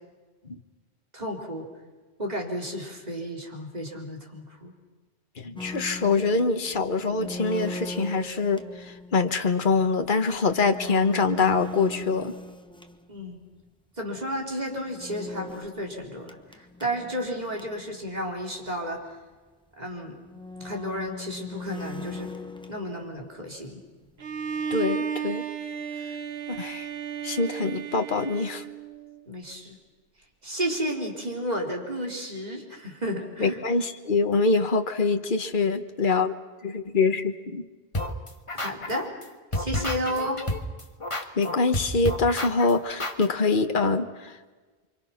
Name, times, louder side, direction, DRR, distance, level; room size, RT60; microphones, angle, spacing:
voice 1, 1.1-1.7 2.2-4.7 13.1-13.4 14.0-19.0 19.8-20.2 20.6-22.3 22.7-23.8 29.3-29.8 30.4-33.6 38.5-39.1 39.5-40.4, equal, 40° right, 0 dB, 4.2 m, -32 dB
voice 2, 5.4-12.3 24.7-25.4 26.5-26.9 27.2-28.6 33.4-36.3 36.6-37.7 41.1-44.4, left 4 dB, 50° left, 6 dB, 1.4 m, -24 dB
sound 1, 5.6-13.4 14.9-17.9 18.3-18.4 18.6-18.7 19.5-19.6 20.2-23.4 23.7-24.8, left 2 dB, 5° left, 1.0 m, -40 dB
Bowed string instrument, 24.2-29.2, right 7 dB, 70° right, 1.3 m, -33 dB
sound 2, 37.9-39.3 39.5-43.3, left 1 dB, 30° left, 1.8 m, -30 dB
29.5 x 25.0 x 5.9 m, 1.3 s
omnidirectional pair, 1.1 m